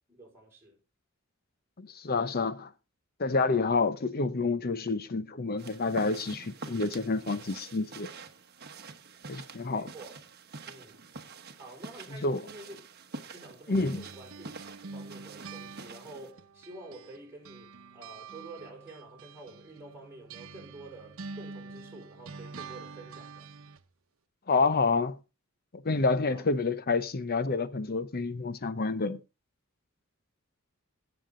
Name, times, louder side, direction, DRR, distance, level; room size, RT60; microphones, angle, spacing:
voice 1, 0.1-0.8 9.7-10.2 10.7-11.0 11.6-12.8 13.3-14.5 14.8-23.5 26.3-26.4, right 2 dB, 10° right, 5.3 m, -48 dB
voice 2, 1.8-2.7 3.2-8.1 9.3-9.9 12.1-12.4 13.7-14.0 24.5-25.2 25.7-29.2, left 3 dB, 45° left, 0.8 m, -28 dB
sound 1, 5.6-16.3, right 4 dB, 50° right, 1.1 m, -46 dB
sound 2, 13.7-17.2 17.4-23.8, right 4 dB, 70° right, 0.9 m, -46 dB
16.5 x 7.2 x 3.8 m
head